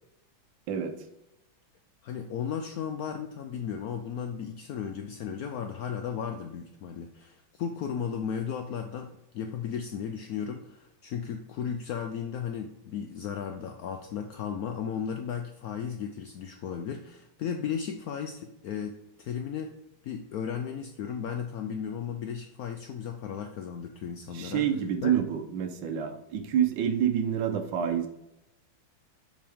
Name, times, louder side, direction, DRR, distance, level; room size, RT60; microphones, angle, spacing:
voice 1, 2.0-19.7 20.0-24.6 25.0-25.1, left 7 dB, 85° left, 5 dB, 0.8 m, -35 dB
voice 2, 24.3-28.1, right 9 dB, 70° right, 6 dB, 1.4 m, -28 dB
7.2 x 4.6 x 3.5 m, 0.86 s
omnidirectional pair, 2.2 m